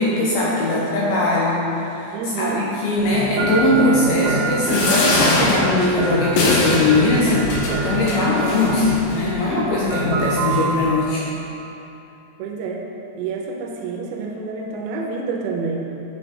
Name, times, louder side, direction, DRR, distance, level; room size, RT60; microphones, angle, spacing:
voice 1, 0.0-7.5 7.8-11.2, left 2 dB, 75° left, -6 dB, 2.4 m, -20 dB
voice 2, 2.1-2.6 12.4-12.8 13.2-15.9, right 4 dB, 80° right, 1 dB, 2.8 m, -28 dB
sound 1, 3.0-11.0, right 3 dB, 55° right, 2.2 m, -26 dB
sound 2, 4.7-9.2 9.9-10.0 10.2-10.3, left 2 dB, 90° left, 1.9 m, -22 dB
8.0 x 7.1 x 3.7 m, 2.9 s
omnidirectional pair, 5.3 m